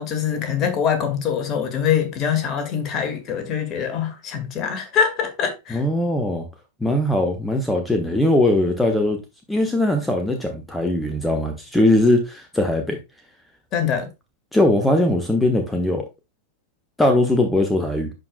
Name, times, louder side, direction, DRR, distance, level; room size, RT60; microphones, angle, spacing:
voice 1, 0.0-5.8 13.7-14.1, left 8 dB, 35° left, 1.9 m, -24 dB
voice 2, 5.7-6.4 6.8-9.2 9.5-13.0 14.5-16.0 17.0-18.1, left 1 dB, 5° left, 1.2 m, -20 dB
11.0 x 4.8 x 2.2 m
figure-of-eight pair, 90°, 0 cm